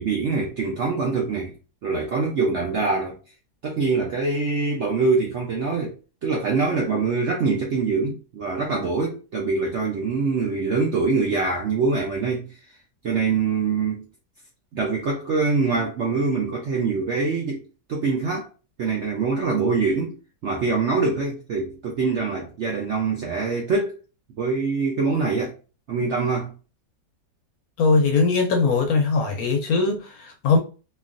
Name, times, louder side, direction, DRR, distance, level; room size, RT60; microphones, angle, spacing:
voice 1, 0.0-1.5 1.8-3.2 3.6-6.0 6.2-12.5 13.0-14.0 14.7-17.6 17.9-18.5 18.8-20.2 20.4-23.9 24.4-25.5 25.9-26.5, right 4 dB, 70° right, 0.7 m, -24 dB
voice 2, 27.8-30.6, left 4 dB, 70° left, 0.9 m, -20 dB
3.0 x 2.4 x 2.4 m
omnidirectional pair, 1.9 m